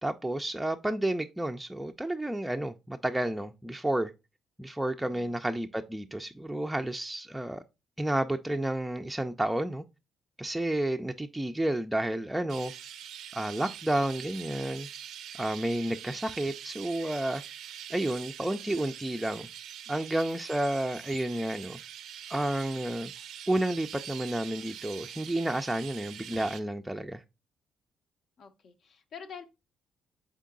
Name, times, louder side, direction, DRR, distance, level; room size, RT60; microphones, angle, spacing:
voice 1, 0.0-4.1 4.6-7.6 8.0-9.8 10.4-12.7 13.3-14.9 15.3-17.4 17.9-19.5 19.9-21.8 22.3-23.1 23.5-27.2, right 1 dB, 5° right, 0.3 m, -31 dB
Chirp tweet, 12.5-26.6, right 9 dB, 80° right, 0.4 m, -44 dB
voice 2, 28.4-29.5, left 6 dB, 65° left, 0.6 m, -48 dB
3.8 x 3.7 x 3.6 m
cardioid pair, 90°, 0 cm